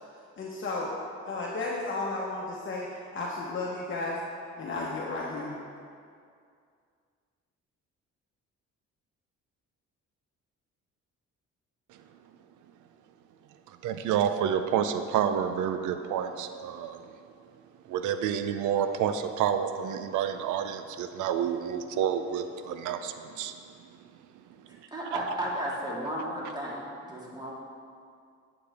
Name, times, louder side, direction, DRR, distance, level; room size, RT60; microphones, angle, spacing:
voice 1, 0.4-0.9 1.2-2.9 3.1-4.2 4.6-5.5, left 3 dB, 40° left, -4 dB, 1.0 m, -33 dB
voice 2, 13.8-17.0 17.9-23.5 25.1-25.2, right 8 dB, 80° right, 9 dB, 0.5 m, -29 dB
voice 3, 24.9-26.8 27.1-27.5, equal, 15° right, -5 dB, 2.0 m, -33 dB
9.5 x 6.9 x 3.5 m, 2.3 s
cardioid pair, 90°, 30 cm